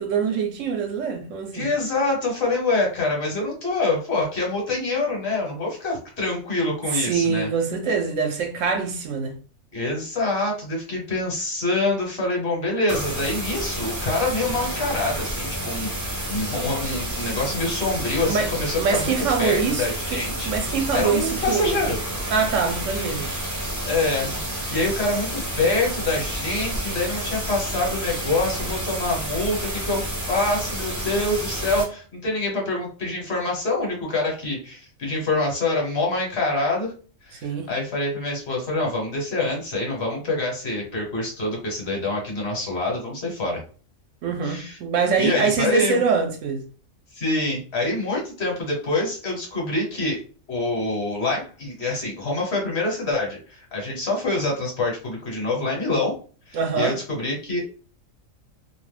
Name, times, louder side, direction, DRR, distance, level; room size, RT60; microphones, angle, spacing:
voice 1, 0.0-1.7 6.9-9.4 18.3-18.5 18.8-21.8 22.3-23.3 37.4-37.7 44.2-46.7 56.5-57.0, right 5 dB, 70° right, 0.9 m, -24 dB
voice 2, 1.5-7.5 9.7-20.5 20.9-22.0 23.8-24.3 24.7-36.9 37.2-43.6 44.4-44.8 45.2-46.0 47.1-50.2 50.5-56.1 56.5-57.6, left 2 dB, 55° left, 1.2 m, -26 dB
sound 1, 12.9-31.8, right 1 dB, 20° right, 0.6 m, -30 dB
2.5 x 2.1 x 3.2 m
omnidirectional pair, 1.4 m